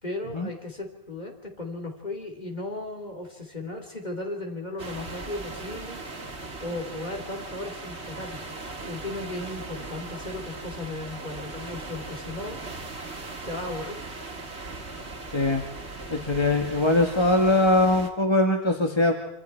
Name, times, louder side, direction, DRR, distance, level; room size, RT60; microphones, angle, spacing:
voice 1, 0.0-6.0 6.6-8.4 8.8-12.6 13.4-14.0, left 2 dB, 40° left, 2 dB, 3.5 m, -36 dB
sound 1, 4.8-18.1, right 3 dB, 80° right, 2.4 m, -39 dB
voice 2, 16.1-19.1, left 2 dB, 25° left, 2 dB, 1.5 m, -21 dB
26.0 x 26.0 x 4.5 m, 0.85 s
omnidirectional pair, 1.1 m